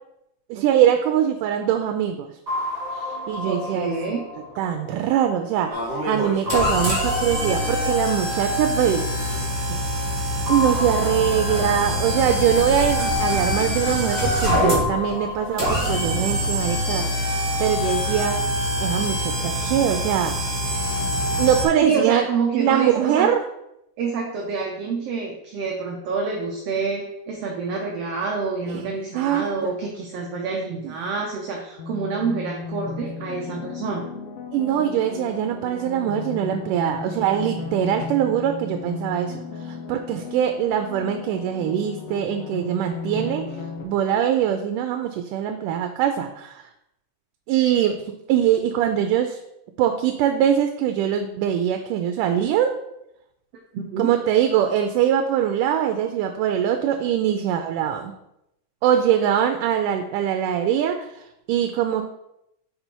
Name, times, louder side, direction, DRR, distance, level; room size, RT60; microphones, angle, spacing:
voice 1, 0.5-2.3 2.9-3.9 4.6-9.1 9.7-9.8 10.5-17.3 17.6-18.4 18.8-20.3 21.4-22.2 22.5-23.4 28.7-28.8 29.1-29.7 34.5-43.4 43.8-46.7 47.5-49.4 49.8-52.7 54.0-58.1 58.8-61.2 61.5-62.0, right 10 dB, 85° right, 6 dB, 2.1 m, -22 dB
sound 1, 2.5-5.8 6.5-9.4 10.5-13.6 14.5-17.6, left 2 dB, 35° right, 2.1 m, -32 dB
voice 2, 3.4-4.2 21.8-23.3 24.0-34.1 53.7-54.1, right 4 dB, 70° right, 0 dB, 1.6 m, -27 dB
sound 2, 5.7-21.6, equal, 15° right, 2.0 m, -24 dB
sound 3, 31.8-43.8, left 5 dB, 70° left, 1.6 m, -35 dB
5.5 x 5.4 x 4.4 m, 0.82 s
omnidirectional pair, 3.6 m